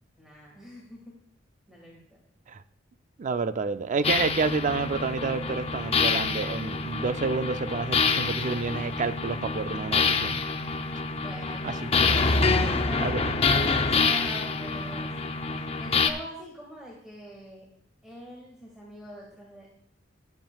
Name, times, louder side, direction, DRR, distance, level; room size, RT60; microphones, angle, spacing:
voice 1, 0.2-1.0 1.7-2.2 11.2-12.0 12.3-13.2 13.5-15.1 15.6-17.7 18.0-19.7, equal, ahead, -3 dB, 1.8 m, -43 dB
voice 2, 3.2-10.4 11.6-11.9 13.0-13.3, right 4 dB, 40° right, 12 dB, 0.4 m, -29 dB
sound 1, 4.0-16.1, left 4 dB, 30° left, 0.6 m, -26 dB
19.0 x 7.4 x 2.3 m, 0.69 s
head